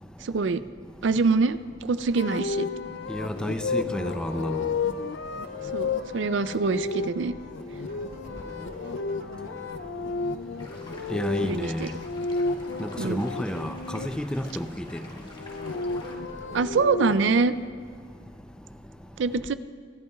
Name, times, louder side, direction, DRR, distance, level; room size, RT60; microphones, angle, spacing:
voice 1, 0.2-0.6 1.0-2.7 5.7-7.3 11.4-11.9 13.0-13.2 16.5-17.5 19.2-19.5, right 4 dB, 80° right, 0.4 m, -25 dB
sound 1, 2.1-17.5, right 2 dB, 55° right, 1.2 m, -52 dB
sound 2, 2.2-14.1 15.2-17.4, left 4 dB, 80° left, 0.5 m, -32 dB
voice 2, 3.1-4.7 11.1-11.9 12.8-13.7 14.0-14.8, equal, 5° left, 0.5 m, -30 dB
sound 3, 10.6-16.2, left 2 dB, 25° left, 1.4 m, -48 dB
25.0 x 11.0 x 2.3 m
head